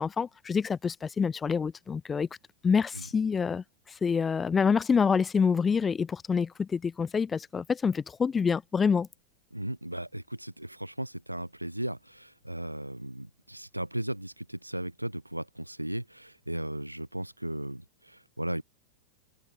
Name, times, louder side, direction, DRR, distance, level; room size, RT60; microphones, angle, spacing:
voice 1, 0.0-2.3 2.6-3.6 4.0-9.1, left 6 dB, 15° left, 0.4 m, -26 dB
voice 2, 9.5-18.6, right 1 dB, 85° right, 1.0 m, -36 dB
figure-of-eight pair, 90°, 0 cm